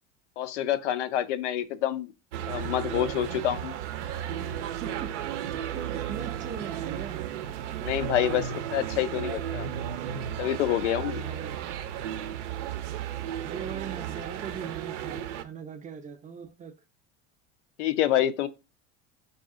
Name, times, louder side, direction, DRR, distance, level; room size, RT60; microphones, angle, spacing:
voice 1, 0.4-2.1 2.5-3.7 7.8-9.7 10.4-11.2 17.8-18.5, left 11 dB, 90° left, 0.5 m, -27 dB
sound 1, 2.3-15.4, right 10 dB, 85° right, 0.5 m, -34 dB
voice 2, 4.8-5.2 5.9-7.3 11.2-11.7 13.4-16.8, right 7 dB, 25° right, 0.4 m, -40 dB
4.0 x 2.7 x 3.5 m
supercardioid pair, 95°, 34 cm